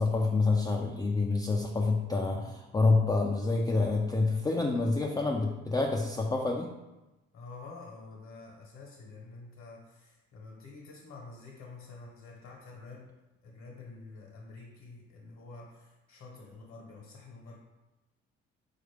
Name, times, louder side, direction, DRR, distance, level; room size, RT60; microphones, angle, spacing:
voice 1, 0.0-6.7, left 3 dB, 15° left, 0 dB, 0.3 m, -27 dB
voice 2, 4.2-4.6 7.3-13.1 13.4-17.5, left 3 dB, 65° left, -2 dB, 1.0 m, -48 dB
4.2 x 2.4 x 3.3 m, 1.0 s
hypercardioid pair, 55°, 30 cm